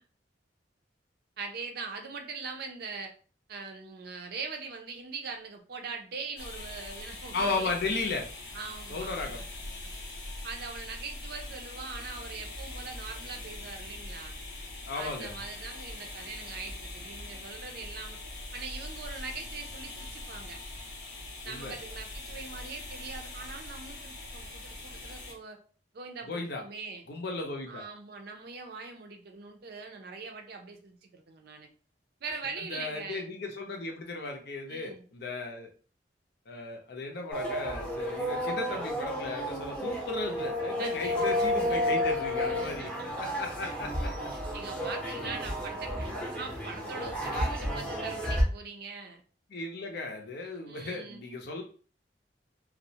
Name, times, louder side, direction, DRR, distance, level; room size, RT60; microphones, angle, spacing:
voice 1, 1.4-3.1 3.5-7.9 8.5-9.5 9.8-9.9 10.4-14.3 15.0-18.2 18.5-20.6 21.4-25.6 25.9-27.0 27.7-31.7 32.2-33.3 34.7-35.0 40.8-41.5 42.5-43.1 44.5-49.2 50.7-51.2, right 4 dB, 60° right, 4 dB, 0.4 m, -42 dB
sound 1, 6.4-25.3, left 2 dB, 85° left, 1.0 m, -42 dB
voice 2, 7.3-8.3 8.9-9.4 14.9-15.4 21.4-21.7 26.3-26.6 27.1-27.8 32.6-35.7 36.5-42.9 43.2-44.1 49.5-51.6, left 3 dB, 60° left, 2 dB, 0.6 m, -35 dB
sound 2, 37.3-48.4, left 1 dB, 5° left, 0.6 m, -31 dB
2.3 x 2.0 x 2.7 m, 0.39 s
head